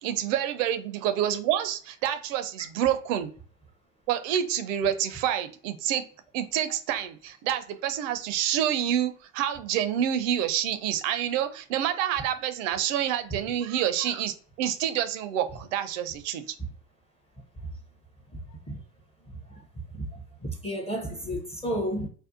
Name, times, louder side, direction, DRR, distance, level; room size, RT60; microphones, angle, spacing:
voice 1, 0.0-3.3 4.1-6.0 6.3-16.4, right 10 dB, 70° right, 0.5 m, -28 dB
voice 2, 19.9-22.1, equal, 15° left, 0.6 m, -32 dB
2.6 x 2.1 x 2.4 m
hypercardioid pair, 75°, 40 cm